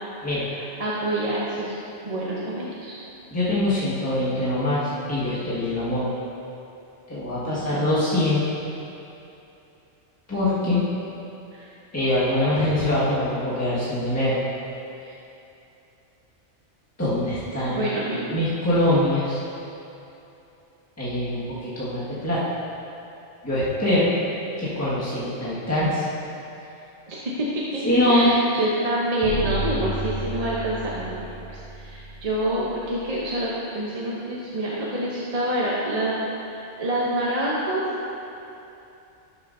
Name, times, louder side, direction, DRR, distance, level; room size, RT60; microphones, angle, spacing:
voice 1, 0.5-1.7 2.0-3.0 7.4-7.8 11.5-11.7 17.7-18.4 27.1-27.8 28.1-31.2 31.5-36.2 36.4-37.8, right 1 dB, 35° right, -6 dB, 0.8 m, -27 dB
voice 2, 3.3-6.0 7.1-8.5 10.3-10.8 11.9-14.4 17.0-17.8 18.3-19.4 21.0-22.4 23.4-24.1 24.6-26.0 27.8-28.3, left 1 dB, 15° left, -11 dB, 1.6 m, -23 dB
sound 1, 29.2-33.3, right 2 dB, 40° left, 2.3 m, -32 dB
12.0 x 6.7 x 2.6 m, 2.8 s
omnidirectional pair, 1.2 m